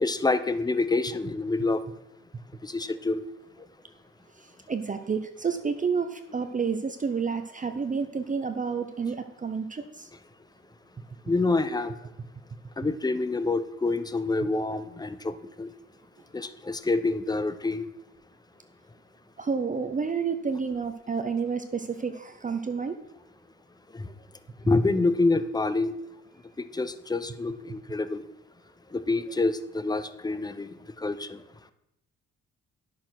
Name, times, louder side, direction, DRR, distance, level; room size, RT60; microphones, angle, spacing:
voice 1, 0.0-1.8 2.7-3.2 11.3-11.9 12.8-15.3 15.6-15.7 16.3-17.9 24.7-25.9 26.8-28.2 28.9-30.7 31.0-31.3, left 3 dB, 15° left, 13 dB, 0.7 m, -26 dB
voice 2, 4.7-10.1 19.4-23.0, right 5 dB, 25° right, 7 dB, 0.8 m, -30 dB
10.0 x 6.6 x 6.0 m, 0.84 s
cardioid pair, 90°, 30 cm